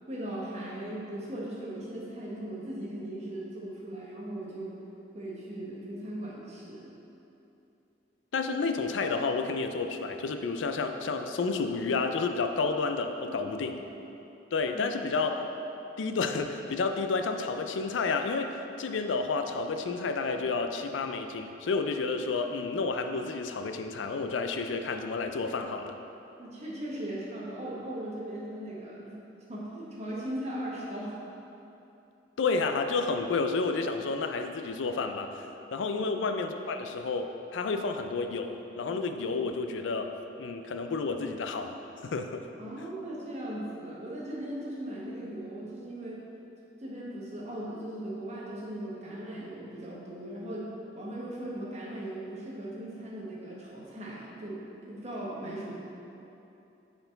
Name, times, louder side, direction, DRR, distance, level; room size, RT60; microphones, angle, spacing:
voice 1, 0.1-4.7 5.1-6.9 13.2-13.8 14.7-14.9 26.4-29.0 29.5-31.3 35.9-36.1 42.6-46.2 46.8-50.7 50.9-55.7, right 1 dB, 35° right, -6 dB, 1.3 m, -38 dB
voice 2, 8.3-13.8 14.5-15.4 16.0-25.9 32.4-40.1 40.4-41.8 42.0-42.5, left 4 dB, 80° left, 6 dB, 0.4 m, -30 dB
7.9 x 4.6 x 3.9 m, 2.9 s
head